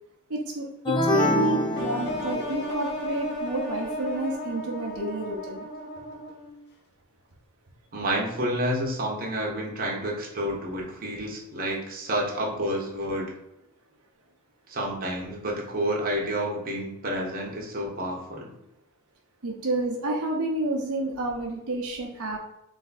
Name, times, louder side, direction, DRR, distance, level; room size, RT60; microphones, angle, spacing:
voice 1, 0.3-5.7 19.4-22.4, right 2 dB, 75° right, -1 dB, 0.8 m, -30 dB
sound 1, 0.9-2.7, left 1 dB, 20° left, 0.5 m, -25 dB
sound 2, 1.7-6.6, equal, 50° left, 0.9 m, -34 dB
voice 2, 7.9-13.3 14.7-18.5 20.0-20.2, right 1 dB, 40° right, -2 dB, 1.0 m, -29 dB
3.5 x 3.4 x 4.0 m, 0.86 s
head